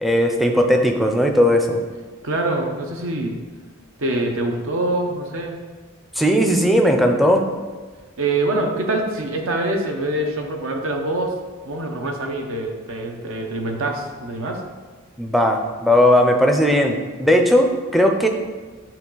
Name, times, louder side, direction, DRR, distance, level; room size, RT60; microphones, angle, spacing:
voice 1, 0.0-1.8 6.2-7.4 15.2-18.3, equal, ahead, 3 dB, 0.4 m, -17 dB
voice 2, 2.2-3.3 4.0-5.6 8.2-11.3 11.6-14.6, right 2 dB, 65° right, 3 dB, 0.7 m, -24 dB
8.6 x 3.2 x 3.8 m, 1.4 s
head